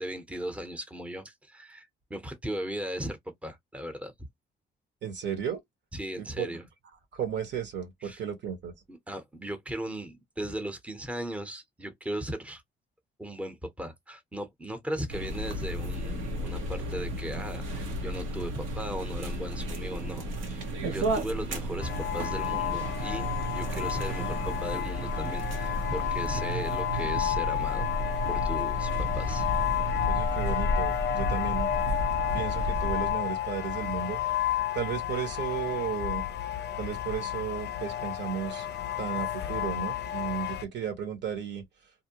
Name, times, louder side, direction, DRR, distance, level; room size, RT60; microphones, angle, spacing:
voice 1, 0.0-4.1 5.9-6.6 8.0-8.2 8.9-12.6 13.2-27.9 28.3-29.5, right 1 dB, 5° right, 0.7 m, -37 dB
voice 2, 5.0-5.6 6.2-6.5 7.1-8.7 30.1-31.7 32.3-34.2 34.7-36.2 36.8-38.7 39.0-41.6, right 8 dB, 65° right, 1.0 m, -34 dB
sound 1, 15.1-33.2, equal, 85° right, 0.9 m, -33 dB
sound 2, 21.8-40.6, left 11 dB, 60° left, 0.4 m, -31 dB
2.5 x 2.0 x 2.8 m
cardioid pair, 90°, 20 cm